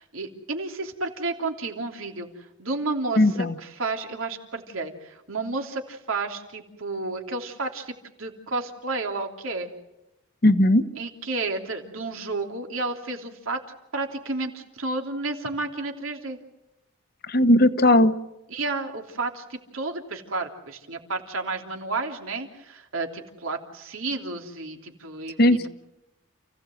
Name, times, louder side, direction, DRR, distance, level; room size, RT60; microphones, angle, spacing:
voice 1, 0.0-2.3 2.6-9.7 10.9-13.6 13.9-16.4 18.5-25.7, right 3 dB, 90° right, 3 dB, 3.1 m, -31 dB
voice 2, 3.2-3.5 10.4-10.8 17.3-18.1 25.4-25.7, left 1 dB, 50° left, 10 dB, 1.1 m, -17 dB
29.5 x 16.5 x 7.8 m, 0.95 s
head